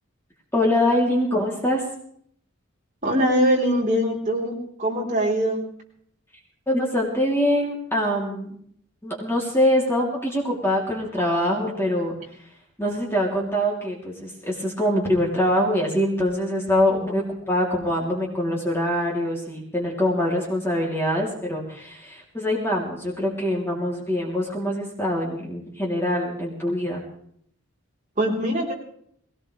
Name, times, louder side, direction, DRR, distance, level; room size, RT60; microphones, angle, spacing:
voice 1, 0.5-1.8 6.7-8.5 9.0-12.5 12.8-27.0, left 1 dB, 10° left, -3 dB, 3.1 m, -24 dB
voice 2, 3.0-5.6 28.2-28.7, equal, 35° right, -3 dB, 3.9 m, -22 dB
21.0 x 18.0 x 3.3 m, 0.66 s
head